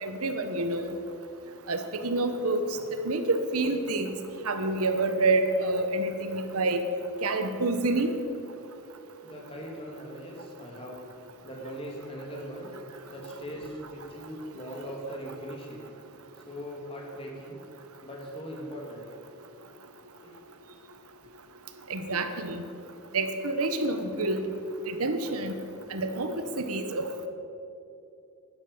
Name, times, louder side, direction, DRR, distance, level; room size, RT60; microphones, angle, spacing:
voice 1, 0.0-0.9 1.7-2.6 3.0-4.2 4.4-6.8 7.2-8.2 21.9-22.6 23.1-24.4 24.9-25.5 25.9-27.3, right 2 dB, 80° right, 8 dB, 1.1 m, -28 dB
voice 2, 9.2-11.0 11.4-12.7 13.1-15.8 16.5-17.6 18.0-19.1 20.2-20.4, equal, 25° left, -2 dB, 2.7 m, -40 dB
11.5 x 11.0 x 7.1 m, 2.7 s
head